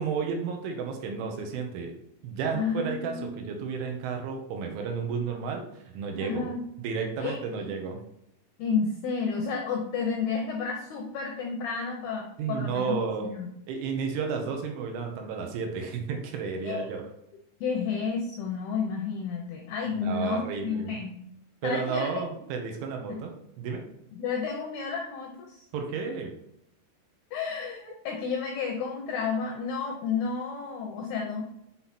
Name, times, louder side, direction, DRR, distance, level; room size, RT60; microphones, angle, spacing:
voice 1, 0.0-1.9 2.2-6.5 6.8-8.0 12.4-13.3 13.7-17.0 20.0-21.0 21.6-23.3 23.6-23.8 25.7-26.3, right 5 dB, 75° right, 3 dB, 3.4 m, -32 dB
voice 2, 2.5-3.3 6.2-6.6 7.2-7.4 8.6-13.5 16.6-16.9 17.6-21.2 21.6-22.4 23.1-23.2 24.1-25.6 27.3-31.4, left 5 dB, 80° left, 1 dB, 2.3 m, -31 dB
7.6 x 5.7 x 4.3 m, 0.77 s
omnidirectional pair, 6.0 m